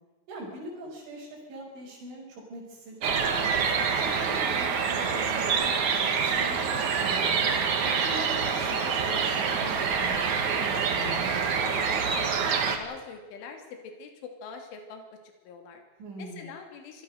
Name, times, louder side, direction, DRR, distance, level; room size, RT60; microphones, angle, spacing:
voice 1, 0.3-5.7 6.1-7.3 7.8-11.6 16.0-16.5, right 1 dB, 70° right, -7 dB, 8.1 m, -42 dB
sound 1, 3.0-12.8, right 6 dB, 50° right, 2.6 m, -26 dB
voice 2, 12.8-15.2 15.4-15.8 16.2-17.0, left 5 dB, 75° left, 4 dB, 5.4 m, -43 dB
25.0 x 20.0 x 6.7 m, 1.2 s
omnidirectional pair, 5.7 m